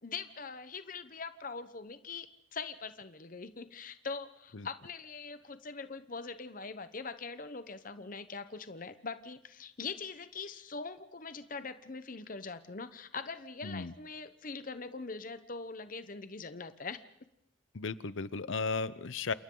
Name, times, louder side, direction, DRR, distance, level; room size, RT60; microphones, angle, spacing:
voice 1, 0.0-17.0, left 4 dB, 45° left, 11 dB, 1.0 m, -42 dB
voice 2, 13.6-13.9 17.7-19.3, left 4 dB, 75° left, 16 dB, 0.8 m, -35 dB
29.0 x 27.5 x 3.9 m, 0.74 s
head